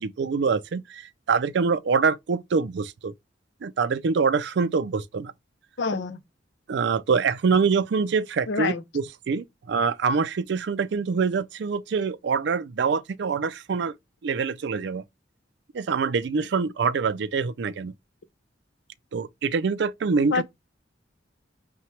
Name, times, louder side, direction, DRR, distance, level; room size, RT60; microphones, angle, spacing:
voice 1, 0.0-3.1 3.6-5.3 6.7-13.9 14.2-15.0 15.7-17.9 19.1-20.4, right 5 dB, 65° right, 0.4 m, -25 dB
voice 2, 5.8-6.2 8.5-8.8 20.3-20.4, left 4 dB, 70° left, 0.6 m, -26 dB
5.7 x 2.2 x 3.1 m
head